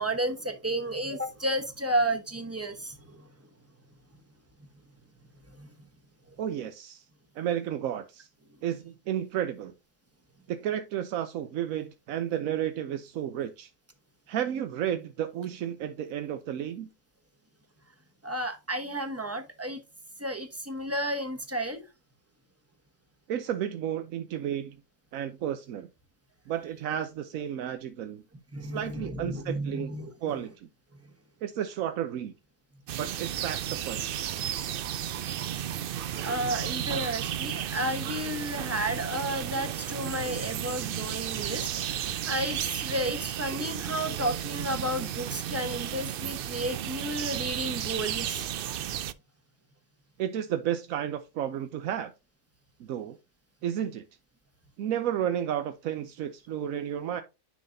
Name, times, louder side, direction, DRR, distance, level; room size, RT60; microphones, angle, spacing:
voice 1, 0.0-3.3 5.5-5.7 18.2-19.8 20.2-21.9 28.5-30.4 35.6-35.9 36.2-48.4, right 1 dB, 10° right, 1.1 m, -32 dB
voice 2, 6.4-7.0 7.4-8.3 8.6-9.7 10.5-13.7 14.3-16.9 23.3-24.8 25.1-25.9 26.5-28.2 28.6-29.9 30.2-30.7 31.4-32.3 33.0-34.2 50.2-52.1 52.8-53.2 53.6-54.0 54.8-57.2, right 10 dB, 85° right, 1.1 m, -32 dB
sound 1, 32.9-49.1, right 11 dB, 65° right, 0.5 m, -33 dB
10.0 x 5.7 x 2.6 m
omnidirectional pair, 1.4 m